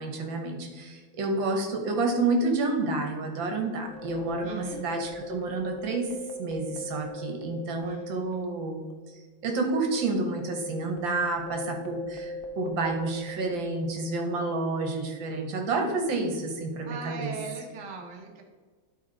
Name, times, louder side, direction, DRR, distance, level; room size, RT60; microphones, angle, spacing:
voice 1, 0.0-6.1 6.4-8.8 9.1-17.3, right 3 dB, 75° right, 4 dB, 1.8 m, -29 dB
sound 1, 3.8-8.6 8.9-9.0 9.6-14.4, left 1 dB, 60° left, 0.5 m, -40 dB
voice 2, 4.4-4.8 7.8-8.1 16.9-18.4, right 4 dB, 45° right, 0 dB, 1.4 m, -39 dB
12.0 x 4.0 x 3.9 m, 1.5 s
omnidirectional pair, 2.2 m